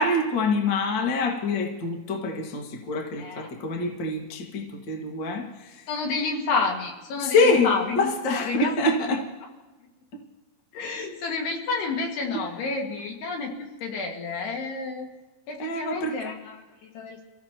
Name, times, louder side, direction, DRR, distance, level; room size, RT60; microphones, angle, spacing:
voice 1, 0.0-5.8 7.2-9.2 15.6-16.1, left 2 dB, 40° left, 1 dB, 1.7 m, -25 dB
voice 2, 3.2-3.5 5.9-8.7 9.0-9.2 10.7-15.1 15.5-17.3, left 4 dB, 70° left, 1 dB, 4.0 m, -30 dB
29.0 x 16.0 x 3.0 m, 1.2 s
omnidirectional pair, 5.0 m